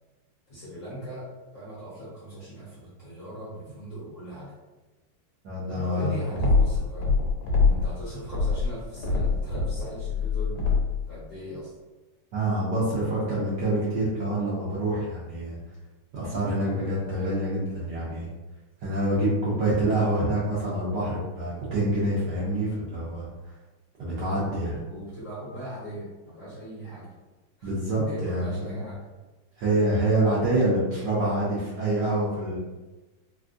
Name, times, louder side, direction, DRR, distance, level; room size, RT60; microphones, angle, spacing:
voice 1, 0.5-1.3 1.5-4.5 5.7-7.1 7.7-10.6 11.1-11.7 16.4-16.9 24.9-27.1 27.6-27.7 28.1-29.0, equal, 50° left, -9 dB, 1.1 m, -39 dB
voice 2, 5.4-6.2 7.6-7.8 12.3-15.6 16.1-18.3 18.8-23.3 24.0-24.8 27.6-28.8 29.6-32.6, right 1 dB, 65° right, -8 dB, 1.1 m, -26 dB
sound 1, 6.3-7.9 8.3-11.0, left 4 dB, 75° left, 1.4 m, -24 dB
3.5 x 2.2 x 2.5 m, 1.1 s
omnidirectional pair, 2.3 m